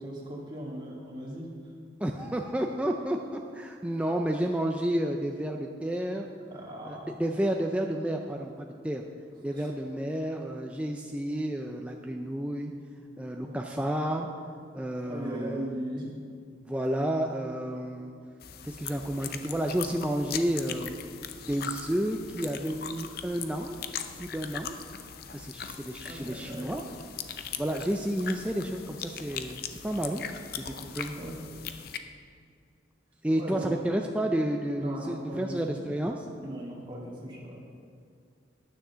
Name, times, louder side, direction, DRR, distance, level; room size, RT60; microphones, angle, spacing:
voice 1, 0.0-1.7 6.4-7.1 9.5-9.7 13.4-13.5 15.0-16.1 26.0-26.8 31.2-31.4 33.4-33.7 34.8-35.7 36.4-37.6, right 1 dB, 25° right, -5 dB, 1.8 m, -38 dB
voice 2, 2.0-6.3 6.8-9.0 9.4-12.7 13.2-14.3 14.7-15.7 16.7-18.1 18.6-21.0 21.5-23.8 24.2-24.7 25.3-26.8 27.6-30.2 30.5-31.1 33.2-36.3, right 1 dB, 5° right, 2 dB, 0.4 m, -31 dB
sound 1, 18.4-32.0, left 8 dB, 50° left, 0.5 m, -40 dB
9.7 x 6.4 x 6.8 m, 2.3 s
head